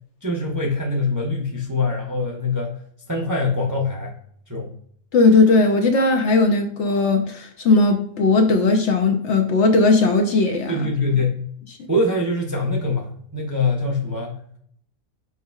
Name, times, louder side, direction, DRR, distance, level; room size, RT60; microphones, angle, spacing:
voice 1, 0.2-2.8 3.1-4.1 4.5-4.7 10.7-11.4 11.9-14.4, left 2 dB, 20° right, 0.5 m, -23 dB
voice 2, 5.1-10.9, left 3 dB, 60° left, 0.8 m, -17 dB
4.8 x 4.1 x 2.3 m
omnidirectional pair, 1.5 m